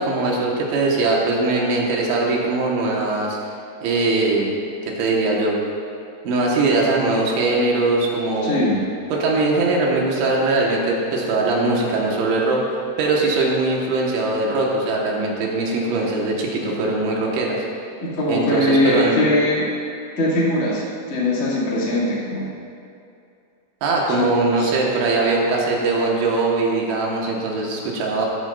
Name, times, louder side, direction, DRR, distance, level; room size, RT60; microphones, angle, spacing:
voice 1, 0.0-3.4 3.8-4.6 4.9-5.6 6.3-8.7 9.1-12.6 13.0-17.6 18.3-19.2 23.8-28.3, right 3 dB, 80° right, -3 dB, 3.9 m, -21 dB
voice 2, 8.4-8.8 18.0-19.7 20.2-22.5 24.2-24.3 24.6-24.7, left 1 dB, 20° left, -8 dB, 1.9 m, -21 dB
15.0 x 13.5 x 2.6 m, 2.6 s
omnidirectional pair, 5.2 m